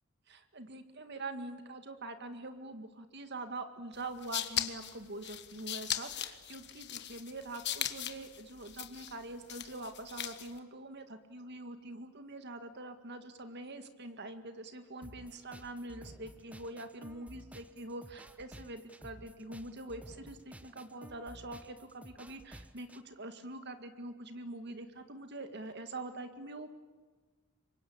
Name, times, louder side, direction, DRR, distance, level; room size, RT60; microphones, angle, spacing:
voice 1, 0.3-26.8, right 2 dB, 50° right, 8 dB, 2.1 m, -44 dB
sound 1, 4.0-10.6, left 11 dB, 55° left, 1.5 m, -39 dB
sound 2, 15.0-23.0, right 1 dB, 5° right, 0.9 m, -53 dB
27.0 x 24.0 x 8.8 m, 1.3 s
head